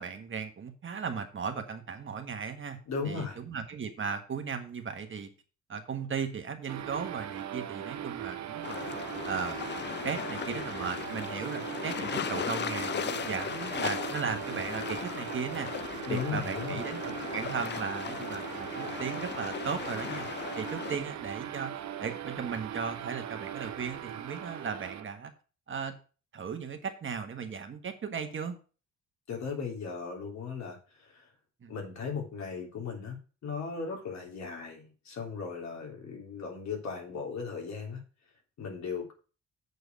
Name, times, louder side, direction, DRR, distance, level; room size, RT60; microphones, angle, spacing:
voice 1, 0.0-2.8 3.0-5.3 5.7-8.9 9.2-9.6 10.0-15.7 16.1-20.3 20.6-21.7 22.0-25.3 25.7-25.9 26.3-28.6 31.6-31.7, right 6 dB, 40° right, 6 dB, 1.5 m, -36 dB
voice 2, 2.9-3.4 16.0-16.8 29.3-31.3 31.7-33.2 33.4-38.0 38.6-39.1, left 5 dB, 65° left, 1 dB, 3.4 m, -37 dB
sound 1, 6.7-25.1, right 10 dB, 65° right, 0.9 m, -39 dB
sound 2, 8.6-21.0, left 9 dB, 35° left, 0.5 m, -37 dB
8.0 x 4.8 x 7.0 m, 0.36 s
cardioid pair, 90°, 30 cm